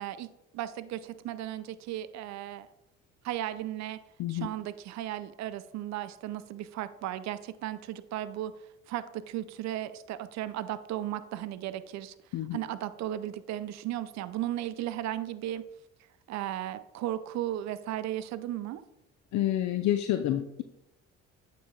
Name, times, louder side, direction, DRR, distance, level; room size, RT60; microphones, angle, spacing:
voice 1, 0.0-2.7 3.2-4.0 4.3-8.5 8.9-12.1 12.5-15.7 16.3-18.8, right 13 dB, 55° right, 13 dB, 0.5 m, -35 dB
voice 2, 19.3-20.6, left 12 dB, 60° left, 8 dB, 0.5 m, -28 dB
8.4 x 3.1 x 4.0 m, 0.83 s
supercardioid pair, 70°, 32 cm